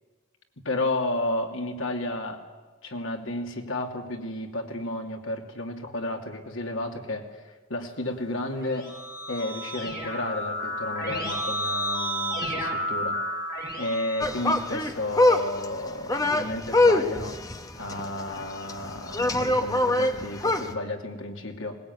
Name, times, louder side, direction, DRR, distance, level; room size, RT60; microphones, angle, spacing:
voice 1, 0.6-2.4 2.8-8.9 9.3-13.2 13.8-17.4 17.8-21.8, left 1 dB, 75° left, 3 dB, 2.7 m, -32 dB
Keyboard (musical), 8.5-15.1, equal, 50° left, 6.8 m, -32 dB
sound 1, 14.2-20.8, left 2 dB, 15° left, 1.2 m, -24 dB
20.5 x 19.5 x 9.5 m, 1.4 s
head